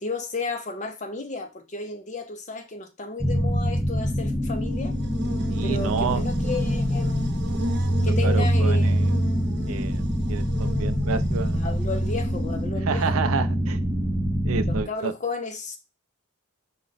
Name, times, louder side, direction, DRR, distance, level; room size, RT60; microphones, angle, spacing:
voice 1, 0.0-5.0 5.6-7.3 8.0-8.9 11.6-13.2 14.6-15.8, left 3 dB, 35° left, 0.6 m, -33 dB
sound 1, 3.2-14.8, equal, 10° right, 0.7 m, -24 dB
Buzz, 4.5-12.7, equal, 50° right, 0.8 m, -37 dB
voice 2, 5.5-6.2 8.0-9.2 9.7-11.6 12.8-13.8 14.4-15.1, right 5 dB, 75° right, 0.4 m, -29 dB
4.9 x 2.1 x 3.9 m
head